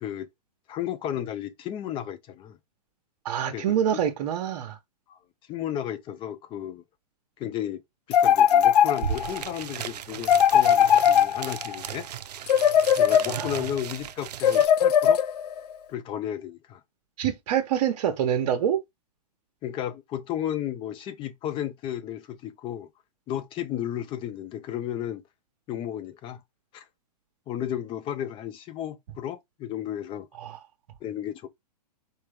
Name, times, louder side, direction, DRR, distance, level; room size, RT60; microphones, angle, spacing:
voice 1, 0.7-2.6 3.5-3.8 5.1-5.2 5.5-6.8 7.4-7.8 8.1-12.1 13.0-15.2 15.9-16.8 19.6-22.9 23.3-25.2 25.7-26.4 26.7-26.8 27.5-30.3 31.0-31.5, left 10 dB, 25° left, 0.7 m, -33 dB
voice 2, 3.2-4.8 13.3-13.5 17.2-18.8 30.4-30.6, right 9 dB, 55° right, 1.1 m, -26 dB
sound 1, 8.1-9.4 10.2-11.8 12.5-13.6 14.4-15.6, left 9 dB, 80° left, 0.5 m, -20 dB
sound 2, 8.6-8.7 8.9-14.7, right 9 dB, 85° right, 0.5 m, -36 dB
4.7 x 3.1 x 3.4 m
hypercardioid pair, 135°, 20 cm